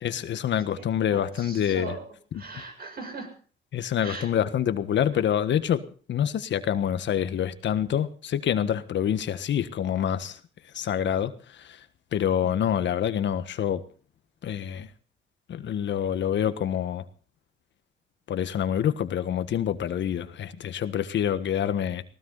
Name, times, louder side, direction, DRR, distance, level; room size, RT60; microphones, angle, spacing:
voice 1, 0.0-1.9 3.7-5.8 6.1-10.4 10.7-11.8 12.1-13.8 14.4-14.9 15.5-17.0 18.3-22.0, left 9 dB, 65° left, 11 dB, 1.5 m, -26 dB
voice 2, 0.8-3.3 4.0-4.3 12.4-12.5, right 4 dB, 50° right, 5 dB, 7.4 m, -40 dB
19.0 x 18.5 x 4.1 m, 0.41 s
cardioid pair, 90°, 20 cm